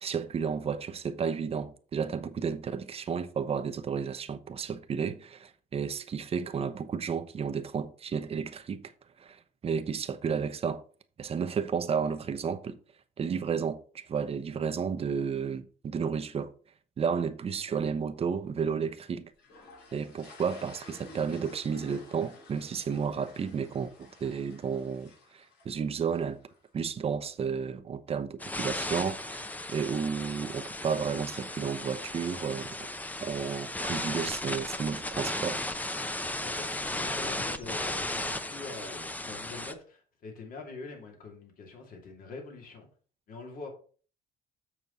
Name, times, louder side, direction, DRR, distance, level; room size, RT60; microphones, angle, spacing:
voice 1, 0.0-8.9 9.2-10.8 11.2-12.8 13.2-16.5 17.0-19.3 19.9-26.4 26.7-29.4 29.7-32.8 33.2-35.6, right 6 dB, 35° right, 0.8 m, -32 dB
sound 1, 19.4-26.7, left 2 dB, 80° left, 3.6 m, -52 dB
sound 2, 28.4-39.7, left 1 dB, 10° left, 0.6 m, -35 dB
voice 2, 36.4-42.9 43.3-43.7, left 3 dB, 55° left, 2.7 m, -44 dB
7.2 x 6.1 x 4.0 m
cardioid pair, 110°, 17 cm